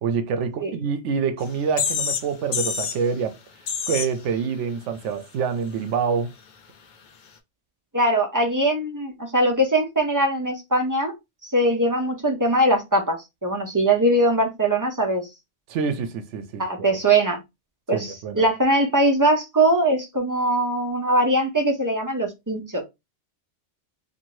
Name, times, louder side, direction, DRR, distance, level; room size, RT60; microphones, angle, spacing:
voice 1, 0.0-3.4 3.9-6.3 15.7-16.7 17.9-18.4, right 6 dB, 85° right, 0.9 m, -26 dB
sound 1, 1.4-1.5 1.8-2.3 2.5-3.0 3.7-4.1, left 7 dB, 55° left, 0.5 m, -26 dB
voice 2, 7.9-11.1 11.4-15.2 16.6-17.4 17.9-22.8, right 1 dB, 25° right, 0.5 m, -21 dB
2.6 x 2.5 x 3.0 m
omnidirectional pair, 1.2 m